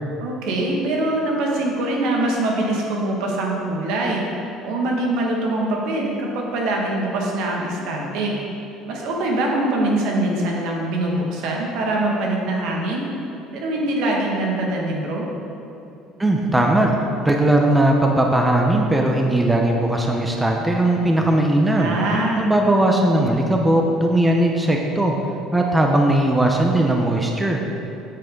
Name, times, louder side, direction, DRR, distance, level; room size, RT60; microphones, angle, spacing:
voice 1, 0.2-8.3 8.9-13.0 13.5-15.3 21.7-22.5, right 2 dB, 75° right, -1 dB, 1.9 m, -23 dB
voice 2, 16.2-17.0 17.2-22.0 22.4-25.2 25.5-27.6, right 1 dB, 10° right, 1 dB, 0.9 m, -18 dB
8.6 x 8.5 x 3.9 m, 2.8 s
supercardioid pair, 100°, 0 cm